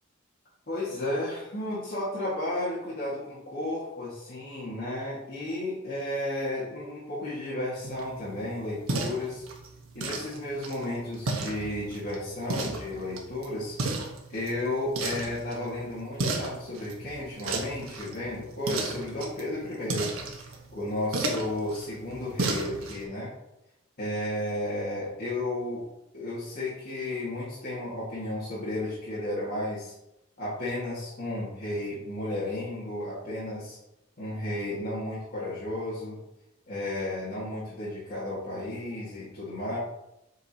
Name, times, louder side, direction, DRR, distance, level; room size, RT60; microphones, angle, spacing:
voice 1, 0.7-9.4 9.9-14.0 14.3-20.1 20.4-23.3 24.0-25.8 26.1-29.9 30.4-33.8 34.2-36.2 36.7-39.8, left 1 dB, 50° left, -10 dB, 2.0 m, -33 dB
sound 1, 7.8-23.0, right 2 dB, 90° right, 1.2 m, -35 dB
7.8 x 5.1 x 2.9 m, 0.87 s
head